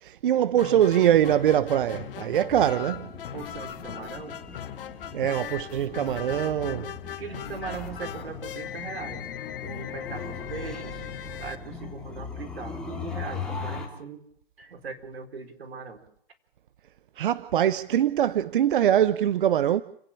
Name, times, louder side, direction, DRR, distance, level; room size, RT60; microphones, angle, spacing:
voice 1, 0.0-3.1 5.1-6.9 17.2-19.8, right 10 dB, 60° right, 0.8 m, -23 dB
sound 1, 0.5-12.4, left 10 dB, 65° left, 1.4 m, -39 dB
sound 2, 0.9-13.9, left 4 dB, ahead, 3.2 m, -40 dB
sound 3, 2.5-10.8, left 10 dB, 30° left, 2.7 m, -47 dB
voice 2, 3.3-4.4 7.2-9.2 9.6-11.0 11.4-14.2 14.6-16.0, right 5 dB, 90° right, 4.4 m, -39 dB
29.5 x 10.0 x 8.7 m
hypercardioid pair, 160°, 30 cm